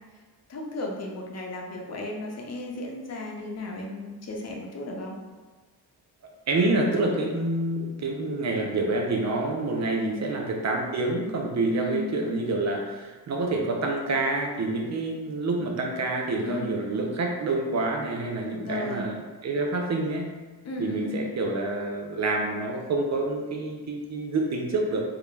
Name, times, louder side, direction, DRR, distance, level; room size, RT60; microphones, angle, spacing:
voice 1, 0.5-5.2 10.0-10.3 11.7-12.1 16.4-16.7 18.5-19.0 20.6-21.3, left 2 dB, 40° left, 0 dB, 0.6 m, -34 dB
voice 2, 6.5-20.3 20.8-25.0, right 2 dB, 45° right, 0 dB, 0.5 m, -27 dB
2.3 x 2.1 x 3.1 m, 1.3 s
cardioid pair, 60°, 39 cm